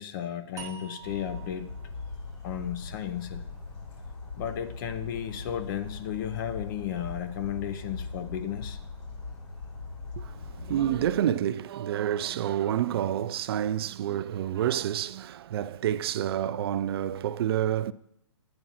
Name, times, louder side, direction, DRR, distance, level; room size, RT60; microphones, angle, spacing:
voice 1, 0.0-1.7 2.4-3.5 4.4-8.8, left 10 dB, 45° left, 0.5 m, -34 dB
sound 1, 0.6-3.8, right 8 dB, 15° right, 0.9 m, -48 dB
Bird vocalization bird call bird song, 1.0-11.1, left 3 dB, 80° left, 4.0 m, -40 dB
voice 2, 10.2-17.9, right 11 dB, 55° right, 0.4 m, -28 dB
12.0 x 8.7 x 2.8 m
hypercardioid pair, 130°, 16 cm